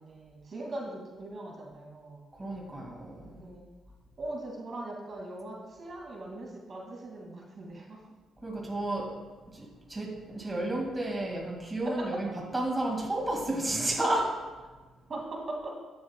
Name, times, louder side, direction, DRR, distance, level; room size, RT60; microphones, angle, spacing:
voice 1, 0.0-2.2 3.3-3.6 4.2-8.0 12.0-12.2 15.1-15.7, right 2 dB, 45° right, -1 dB, 2.0 m, -40 dB
voice 2, 2.4-3.4 8.4-9.1 9.5-14.3, right 1 dB, 20° right, -1 dB, 1.9 m, -32 dB
12.5 x 7.9 x 2.2 m, 1.3 s
cardioid pair, 90°, 0 cm